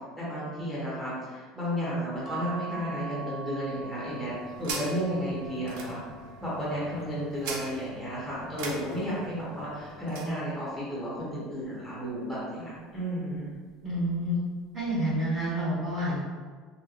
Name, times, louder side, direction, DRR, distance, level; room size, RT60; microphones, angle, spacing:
voice 1, 0.2-4.3 4.6-6.0 6.4-13.5, equal, 5° right, -10 dB, 0.8 m, -33 dB
sound 1, 2.2-8.9 9.5-10.9 12.1-12.6 12.9-13.0, right 3 dB, 25° left, 0.3 m, -44 dB
sound 2, 3.8-10.4, right 3 dB, 75° right, 0.4 m, -42 dB
voice 2, 13.8-14.4 14.7-16.2, equal, 35° right, -11 dB, 1.3 m, -28 dB
2.9 x 2.1 x 2.4 m, 1.5 s
cardioid pair, 160°, 0 cm